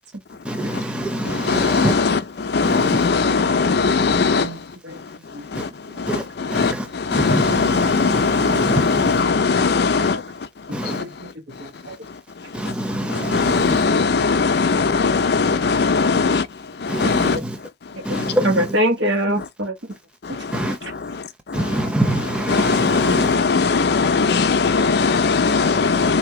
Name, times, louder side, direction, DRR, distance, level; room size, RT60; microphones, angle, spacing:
voice 1, 0.5-1.9 2.6-3.0 6.1-6.2 6.5-6.8 7.1-9.2 10.7-11.0 12.5-13.8 16.9-17.6 18.1-18.5 20.5-20.8 21.5-23.3, right 1 dB, 5° right, 0.7 m, -25 dB
voice 2, 1.2-4.5 5.5-5.7 6.0-10.2 10.8-11.0 13.1-16.5 16.8-17.4 18.1-18.3 20.2-21.2 21.5-21.9 22.2-26.2, left 4 dB, 60° left, 0.5 m, -20 dB
voice 3, 4.1-5.0 5.3-5.5 5.9-6.0 9.8-10.2 10.7-12.0 16.0-16.1 17.0-17.4 18.1-18.2 18.4-19.7 20.3-20.4 20.8-20.9, equal, 80° right, 1.4 m, -26 dB
4.1 x 2.8 x 4.6 m
head